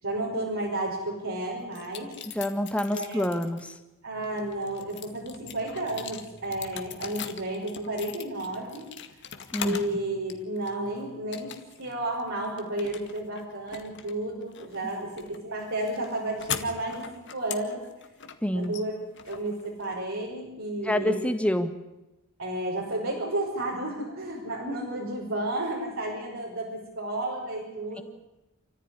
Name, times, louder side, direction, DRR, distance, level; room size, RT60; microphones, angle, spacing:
voice 1, 0.0-2.1 2.9-3.3 4.0-8.9 9.6-11.5 11.8-17.8 18.5-18.9 19.2-21.2 22.4-28.0, right 1 dB, 70° right, -3 dB, 5.6 m, -32 dB
sound 1, 1.7-3.7 4.2-10.0 10.3-10.9 11.3-11.9 12.2-20.1, left 8 dB, 55° left, 2.0 m, -41 dB
voice 2, 2.2-3.7 9.5-9.8 18.4-18.7 20.8-21.7, left 1 dB, 5° left, 8 dB, 1.8 m, -27 dB
28.0 x 14.5 x 9.8 m, 0.99 s
head